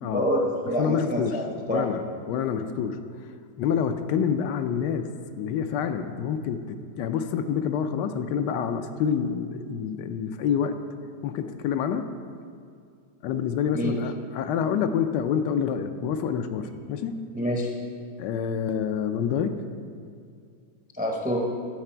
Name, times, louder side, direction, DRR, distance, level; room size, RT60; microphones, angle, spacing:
voice 1, 0.0-1.8 13.7-13.9 17.3-17.7 20.9-21.4, equal, 10° right, 0 dB, 0.4 m, -27 dB
voice 2, 0.8-1.4 1.7-3.0 3.6-5.1 5.3-10.8 11.2-12.1 13.2-17.3 18.2-19.6, left 7 dB, 80° left, 8 dB, 1.2 m, -27 dB
10.5 x 6.8 x 4.4 m, 2.3 s
omnidirectional pair, 1.9 m